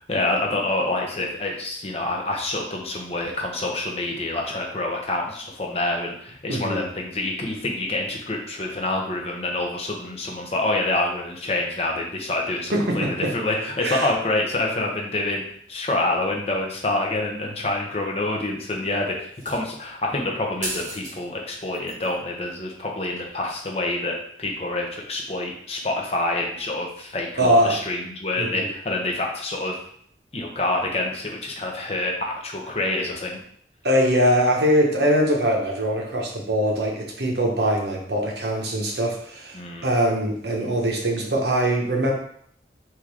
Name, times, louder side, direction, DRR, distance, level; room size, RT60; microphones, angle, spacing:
voice 1, 0.1-15.4 15.7-29.8 30.3-33.4 39.5-39.9, left 2 dB, 35° left, 0 dB, 0.8 m, -27 dB
voice 2, 6.5-6.8 12.7-13.3 13.8-14.1 27.4-27.8 28.3-28.7 33.8-42.1, equal, 75° right, 0 dB, 1.0 m, -22 dB
sound 1, 19.3-19.8 20.6-21.2 21.5-22.1 23.2-23.3, right 2 dB, 45° right, 1.3 m, -34 dB
3.7 x 3.0 x 4.7 m, 0.64 s
head